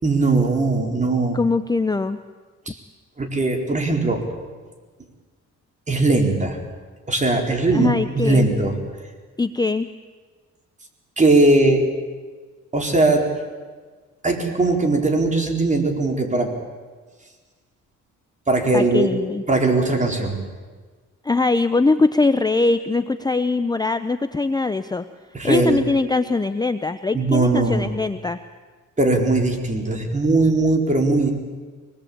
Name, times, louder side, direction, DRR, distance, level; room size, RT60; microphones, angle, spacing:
voice 1, 0.0-1.4 2.7-2.8 3.2-4.2 5.9-6.6 7.1-8.8 11.2-11.8 12.7-13.3 14.2-16.5 18.5-19.1 19.5-20.4 25.3-25.8 27.1-27.9 29.0-31.3, right 2 dB, 25° right, 2 dB, 4.4 m, -19 dB
voice 2, 1.3-2.2 7.7-8.5 9.4-9.9 18.7-19.4 21.2-25.1 25.4-28.4, left 3 dB, 15° left, 10 dB, 0.7 m, -21 dB
24.5 x 20.0 x 8.7 m, 1.5 s
cardioid pair, 90°, 30 cm